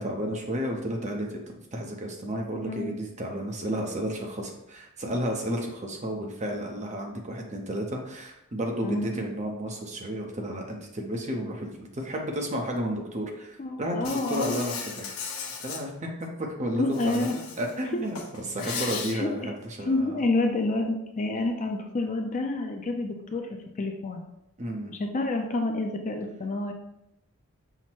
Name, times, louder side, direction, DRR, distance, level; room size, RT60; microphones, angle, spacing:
voice 1, 0.0-15.1 15.6-18.2 18.4-20.2 24.6-24.9, equal, 30° right, 1 dB, 0.7 m, -32 dB
voice 2, 8.8-9.1 13.6-14.5 16.8-17.4 17.9-18.0 18.6-19.5 19.9-23.5 23.8-24.2 24.9-26.7, left 2 dB, 35° left, 4 dB, 0.4 m, -29 dB
Insect, 14.0-15.8 16.9-17.7 18.1-19.1, left 5 dB, 70° left, 0.9 m, -36 dB
5.7 x 2.1 x 4.4 m, 0.84 s
head